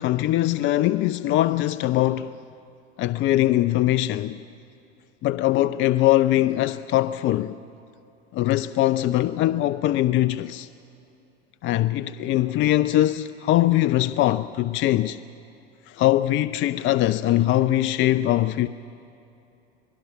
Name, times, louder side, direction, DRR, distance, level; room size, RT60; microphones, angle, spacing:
voice 1, 0.0-2.4 3.0-4.4 5.2-7.6 8.3-10.7 11.6-15.2 15.9-18.7, left 14 dB, 40° left, 0.5 m, -22 dB
25.5 x 21.0 x 5.9 m
hypercardioid pair, 85°, 32 cm